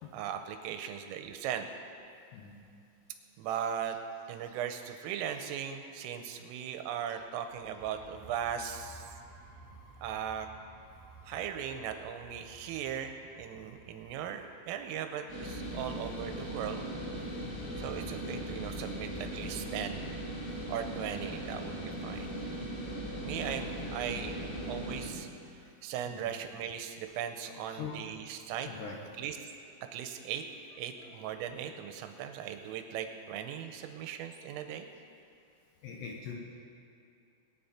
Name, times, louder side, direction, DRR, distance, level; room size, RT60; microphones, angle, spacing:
voice 1, 0.1-1.7 3.4-4.0 4.3-9.1 10.0-10.5 11.2-16.9 17.4-17.5 17.8-20.0 20.7-22.4 23.2-24.4 24.7-25.3 25.8-28.7 29.2-29.4 29.9-30.4 30.8-34.9, right 9 dB, 85° right, 7 dB, 3.3 m, -38 dB
sound 1, 7.5-15.1, right 2 dB, 65° right, 0.5 m, -55 dB
sound 2, 15.3-25.1, equal, 85° left, 6.9 m, -39 dB
voice 2, 17.4-17.8 25.6-25.7 26.1-26.3 27.7-28.1 28.7-29.0 31.0-31.1 35.8-36.3, left 6 dB, 70° left, -1 dB, 2.7 m, -43 dB
22.5 x 9.4 x 4.3 m, 2.5 s
omnidirectional pair, 5.9 m